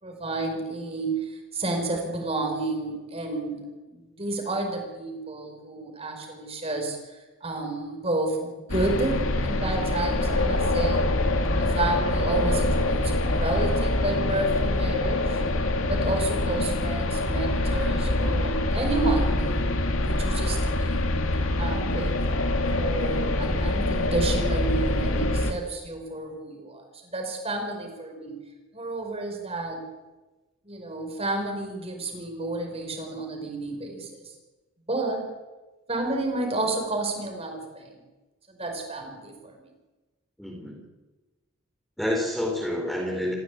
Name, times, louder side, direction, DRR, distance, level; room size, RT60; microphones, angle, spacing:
voice 1, 0.0-7.0 7.4-11.1 11.6-15.4 15.9-21.1 21.6-22.2 22.7-28.4 28.7-29.8 30.7-34.3 34.9-35.3 35.9-38.0 38.5-39.6, right 2 dB, 30° right, 3 dB, 5.3 m, -31 dB
sound 1, 8.7-25.5, left 2 dB, 80° left, 2.5 m, -25 dB
voice 2, 12.3-12.7 40.4-40.8 42.0-43.3, left 1 dB, ahead, 0 dB, 4.5 m, -29 dB
27.5 x 16.0 x 8.6 m, 1.2 s
head